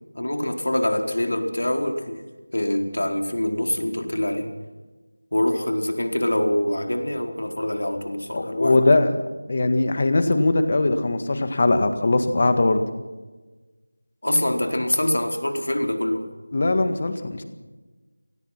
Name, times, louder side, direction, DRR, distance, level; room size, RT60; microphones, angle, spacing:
voice 1, 0.1-2.2 2.5-4.5 5.3-8.8 14.2-16.3, left 1 dB, 85° left, 4 dB, 4.4 m, -24 dB
voice 2, 8.3-9.2 9.5-12.8 16.5-17.4, left 2 dB, 25° left, 9 dB, 1.7 m, -20 dB
28.5 x 19.0 x 5.9 m, 1.2 s
figure-of-eight pair, 180°, 0 cm